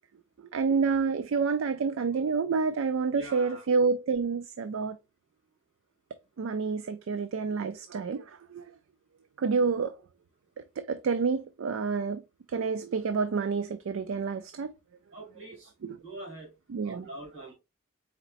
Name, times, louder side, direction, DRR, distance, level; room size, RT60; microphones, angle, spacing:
voice 1, 0.5-5.0 6.4-8.6 9.4-9.9 10.8-12.2 12.5-14.7 15.8-16.0 16.7-17.1, right 5 dB, 85° right, 0.4 m, -28 dB
voice 2, 3.1-3.7 15.1-16.5 16.8-17.5, right 2 dB, 70° right, 2.3 m, -44 dB
4.4 x 4.0 x 2.4 m
head